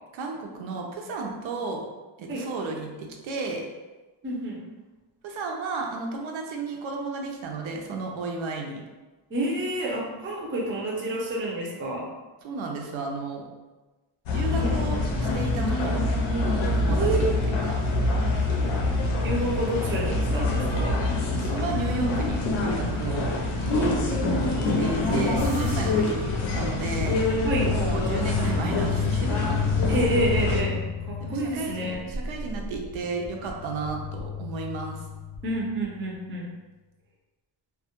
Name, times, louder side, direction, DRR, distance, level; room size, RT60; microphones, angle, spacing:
voice 1, 0.1-1.9 2.2-3.7 5.2-8.8 12.4-13.5 14.3-16.1 16.7-17.7 21.3-23.3 24.8-26.3 26.5-27.2 27.6-29.6 31.2-35.0, right 3 dB, 80° right, 1 dB, 0.5 m, -33 dB
voice 2, 4.2-4.6 9.3-12.0 16.9-17.4 19.2-21.0 23.7-23.9 24.4-25.2 27.4-27.7 29.9-30.8 31.1-32.1 35.4-36.5, right 1 dB, 30° right, -2 dB, 0.4 m, -29 dB
sound 1, 14.3-30.6, left 2 dB, 85° left, 0.6 m, -25 dB
sound 2, 25.4-36.0, left 5 dB, 35° left, 0.5 m, -31 dB
2.2 x 2.0 x 2.8 m, 1.2 s
wide cardioid pair, 150°, 47 cm